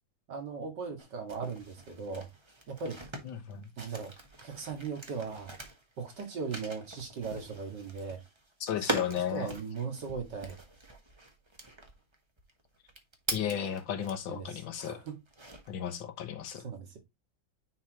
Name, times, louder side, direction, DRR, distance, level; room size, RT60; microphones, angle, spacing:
voice 1, 0.3-2.3 2.7-3.0 3.8-4.1 4.4-5.5 6.0-8.2 8.8-10.6 14.3-15.2 16.6-17.0, right 5 dB, 65° right, 2.6 m, -38 dB
sound 1, 1.0-14.4 14.8-15.9, right 2 dB, 20° right, 0.9 m, -42 dB
voice 2, 3.2-3.7 8.6-9.5 13.3-15.0 15.7-16.6, left 9 dB, 90° left, 1.9 m, -34 dB
9.7 x 4.2 x 3.0 m
omnidirectional pair, 2.0 m